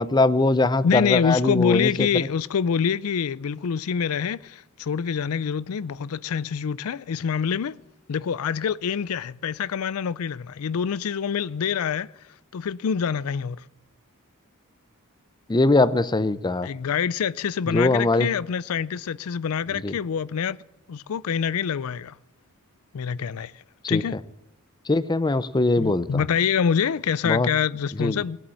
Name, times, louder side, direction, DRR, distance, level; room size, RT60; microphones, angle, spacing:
voice 1, 0.0-2.3 15.5-16.7 17.7-18.3 19.8-20.0 23.9-24.0 24.9-26.2 27.2-27.5 28.0-28.2, left 2 dB, 20° left, 0.5 m, -21 dB
voice 2, 0.8-7.7 8.1-12.1 12.5-13.6 16.6-20.6 20.9-22.2 22.9-23.5 23.9-24.2 25.8-28.4, left 7 dB, 70° left, 0.4 m, -26 dB
19.5 x 8.5 x 7.6 m
head